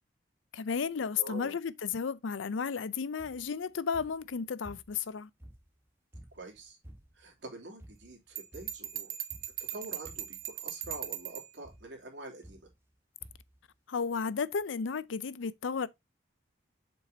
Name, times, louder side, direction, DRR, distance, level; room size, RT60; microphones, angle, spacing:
voice 1, 0.5-5.3 13.9-15.9, left 6 dB, 80° left, 0.5 m, -33 dB
voice 2, 1.1-1.6 6.3-6.8 7.1-9.1 9.7-12.7, right 2 dB, 70° right, 2.9 m, -46 dB
sound 1, 3.2-3.6 3.9-5.1 5.4-7.3 7.8-8.2 8.5-8.9 9.3-9.7 10.0-10.5 10.8-11.3 11.6-11.9 12.4-12.9 13.2-13.6 14.3-14.4 14.6-14.7, equal, 10° right, 1.2 m, -53 dB
Bell, 8.4-11.5, right 11 dB, 45° right, 0.8 m, -39 dB
7.3 x 5.4 x 2.7 m
head